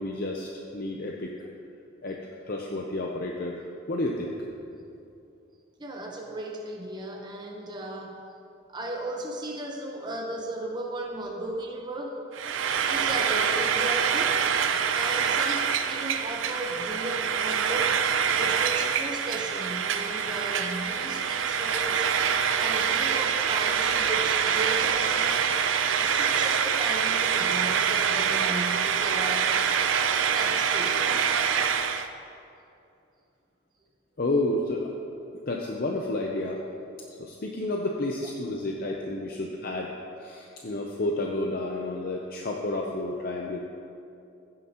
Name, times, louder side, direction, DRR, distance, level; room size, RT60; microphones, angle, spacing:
voice 1, 0.0-1.3 2.0-3.6 3.9-4.4 34.2-34.9 35.3-36.6 37.2-39.9 40.2-43.6, left 2 dB, 45° left, 0 dB, 0.6 m, -30 dB
voice 2, 5.8-8.2 8.7-12.2 12.6-14.4 14.9-18.0 18.4-25.5 25.9-29.5 30.3-31.3 39.3-39.4, right 1 dB, 20° right, 0 dB, 0.9 m, -36 dB
Frying (food), 12.3-32.1, right 7 dB, 75° right, 0.5 m, -25 dB
15.0 x 9.6 x 2.9 m, 2.6 s
head